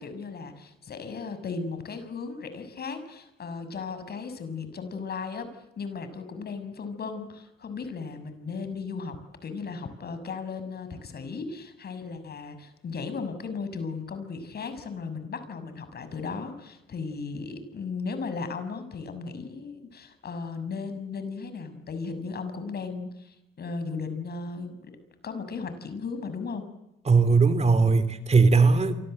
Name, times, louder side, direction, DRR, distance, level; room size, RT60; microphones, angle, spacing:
voice 1, 0.0-9.2 9.4-24.9 25.2-26.7, left 4 dB, 55° left, 10 dB, 6.6 m, -36 dB
voice 2, 27.1-28.9, right 4 dB, 35° right, 12 dB, 3.0 m, -19 dB
29.0 x 24.5 x 8.0 m, 0.90 s
cardioid pair, 90°, 20 cm